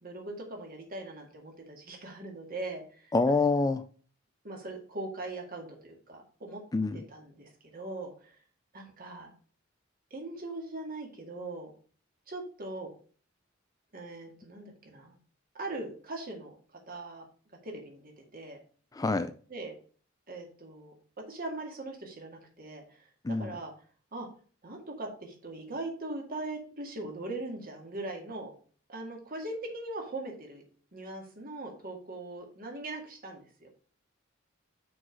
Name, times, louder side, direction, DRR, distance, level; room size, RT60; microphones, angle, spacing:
voice 1, 0.0-3.4 4.4-6.6 6.9-8.4 8.7-9.3 10.1-11.7 12.3-12.9 13.9-15.1 15.5-16.5 16.9-17.3 17.6-18.6 19.5-19.7 20.3-20.9 21.3-23.7 24.1-24.3 24.6-28.5 28.9-30.6 30.9-33.7, right 2 dB, 45° right, 2.0 m, -40 dB
voice 2, 3.1-3.8 6.7-7.0 18.9-19.3 23.2-23.5, left 3 dB, 20° left, 0.3 m, -26 dB
6.2 x 4.7 x 5.2 m
head